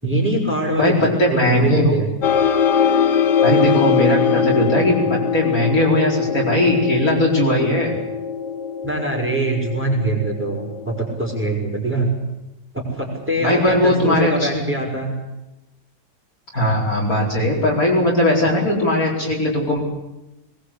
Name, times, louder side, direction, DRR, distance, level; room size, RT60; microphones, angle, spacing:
voice 1, 0.0-2.1 5.0-5.1 8.8-12.1 12.7-15.1, right 2 dB, 5° right, -1 dB, 6.1 m, -23 dB
voice 2, 0.8-1.9 3.4-7.9 13.4-14.6 16.5-19.8, left 1 dB, 50° left, -2 dB, 5.1 m, -19 dB
sound 1, 2.2-11.5, left 7 dB, 70° left, 1.8 m, -21 dB
21.5 x 21.0 x 8.4 m, 0.95 s
omnidirectional pair, 1.9 m